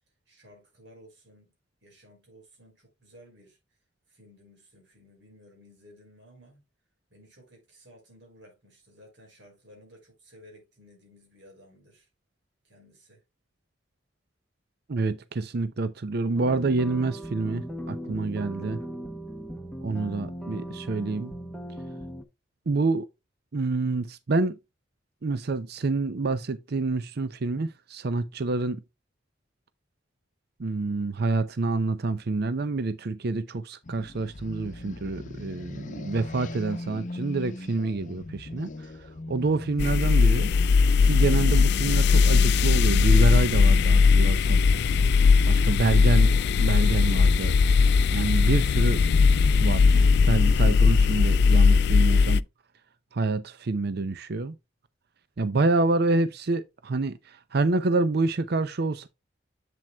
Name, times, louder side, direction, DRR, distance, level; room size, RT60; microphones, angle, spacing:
voice 1, 0.3-1.5 1.8-3.6 4.1-6.6 7.1-12.1 12.6-13.2 20.5-20.8, equal, 80° right, 5.2 m, -55 dB
voice 2, 14.9-18.8 19.8-21.4 22.7-23.1 23.5-24.6 25.2-28.8 30.6-40.5 41.0-44.6 45.5-47.5 48.1-49.0 49.6-52.4 53.1-54.6 55.4-59.1, right 3 dB, 60° right, 0.6 m, -27 dB
sound 1, 16.4-22.2, equal, 5° left, 0.9 m, -38 dB
sound 2, 33.8-44.6, left 2 dB, 45° left, 0.8 m, -41 dB
sound 3, 39.8-52.4, left 5 dB, 60° left, 0.3 m, -19 dB
7.8 x 7.4 x 2.3 m
head